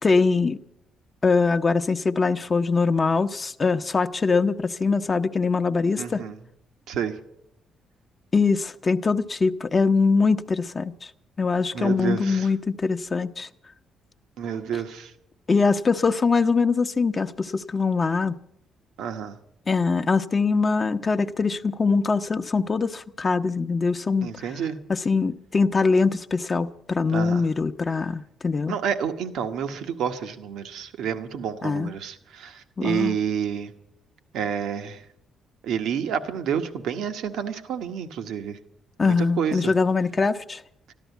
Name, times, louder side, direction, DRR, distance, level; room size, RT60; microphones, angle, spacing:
voice 1, 0.0-0.6 1.2-6.2 8.3-11.1 11.4-13.5 14.7-14.8 15.5-18.4 19.7-24.3 24.9-28.8 31.6-31.9 32.8-33.2 39.0-40.6, left 4 dB, 35° left, 8 dB, 0.7 m, -23 dB
voice 2, 6.0-6.4 6.9-7.2 11.7-12.5 14.4-15.1 19.0-19.4 24.2-24.8 27.1-27.4 28.7-33.7 34.3-35.0 35.6-38.6 39.0-39.7, right 8 dB, 80° right, 8 dB, 1.1 m, -29 dB
13.0 x 12.5 x 8.1 m, 0.79 s
cardioid pair, 90°, 0 cm